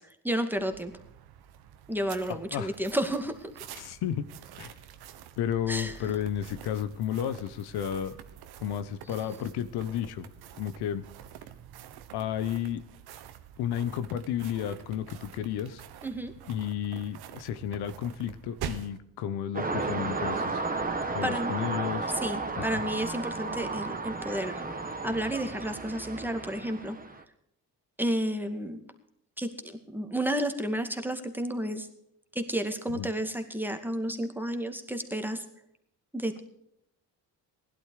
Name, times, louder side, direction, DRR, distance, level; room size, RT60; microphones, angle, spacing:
voice 1, 0.2-0.9 1.9-3.5 5.7-6.0 16.0-16.3 21.2-21.5 22.1-24.6 25.0-27.0 28.0-28.8 29.4-31.9 32.3-35.4 36.1-36.4, right 1 dB, 5° right, 6 dB, 2.2 m, -31 dB
sound 1, 0.6-19.0, right 10 dB, 80° right, 1.4 m, -46 dB
voice 2, 2.3-2.7 3.8-4.3 4.6-4.7 5.4-8.1 8.6-10.3 10.6-11.0 12.1-12.8 13.6-15.8 16.5-20.6 21.1-22.1 22.6-22.8 32.9-33.1, left 10 dB, 85° left, 12 dB, 1.1 m, -32 dB
sound 2, 19.5-27.2, right 3 dB, 20° right, 1.8 m, -33 dB
16.5 x 12.0 x 4.9 m, 0.74 s
cardioid pair, 80°, 38 cm